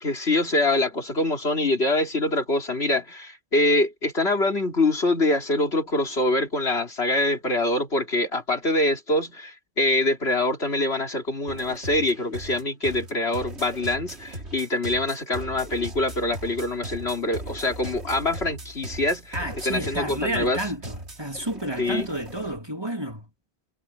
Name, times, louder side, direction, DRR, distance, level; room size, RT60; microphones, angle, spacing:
voice 1, 0.0-20.6 21.8-22.1, left 2 dB, 70° left, 3.6 m, -24 dB
sound 1, 11.5-22.6, right 1 dB, 80° right, 3.5 m, -38 dB
voice 2, 19.3-23.3, right 1 dB, 20° right, 3.1 m, -30 dB
omnidirectional pair, 1.1 m